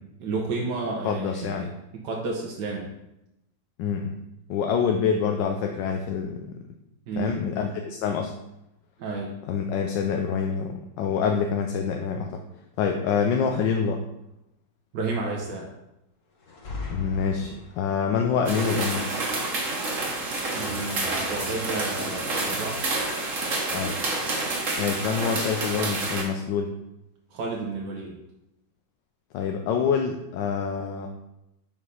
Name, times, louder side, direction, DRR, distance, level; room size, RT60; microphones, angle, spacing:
voice 1, 0.2-1.6 2.0-2.9 7.1-7.4 9.0-9.3 14.9-15.7 20.5-22.8 27.3-28.2, right 3 dB, 70° right, -1 dB, 1.6 m, -31 dB
voice 2, 1.0-1.7 3.8-4.1 4.5-6.6 7.2-8.3 9.5-12.4 12.8-14.0 16.9-19.0 23.7-24.0 24.8-26.7 29.3-31.1, left 6 dB, 80° left, 4 dB, 1.3 m, -26 dB
sound 1, 16.4-18.1, left 3 dB, 50° left, 1.4 m, -37 dB
sound 2, 18.5-26.2, right 2 dB, 45° right, 1.5 m, -29 dB
5.4 x 4.8 x 5.6 m, 0.88 s
omnidirectional pair, 1.9 m